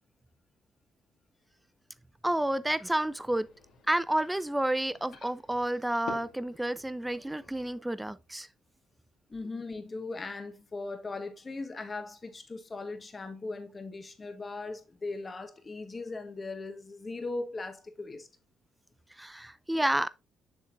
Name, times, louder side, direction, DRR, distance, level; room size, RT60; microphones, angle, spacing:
voice 1, 2.2-3.5 3.9-8.5 19.2-20.1, right 1 dB, 10° right, 0.5 m, -30 dB
sound 1, 2.7-7.8, left 5 dB, 75° left, 2.1 m, -49 dB
voice 2, 9.3-18.3, left 3 dB, 30° left, 1.4 m, -39 dB
7.2 x 6.3 x 2.6 m
cardioid pair, 90°, 0 cm